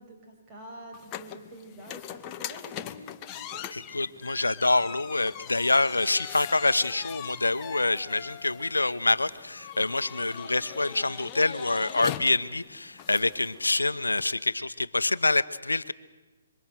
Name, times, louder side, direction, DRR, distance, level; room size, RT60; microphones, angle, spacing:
voice 1, 0.0-3.7, right 1 dB, 25° right, 2 dB, 6.0 m, -47 dB
sound 1, 0.9-14.3, left 11 dB, 25° left, 1.2 m, -41 dB
voice 2, 3.7-15.9, left 2 dB, 90° left, 14 dB, 1.0 m, -26 dB
26.5 x 24.5 x 7.8 m, 1.2 s
figure-of-eight pair, 135°, 0 cm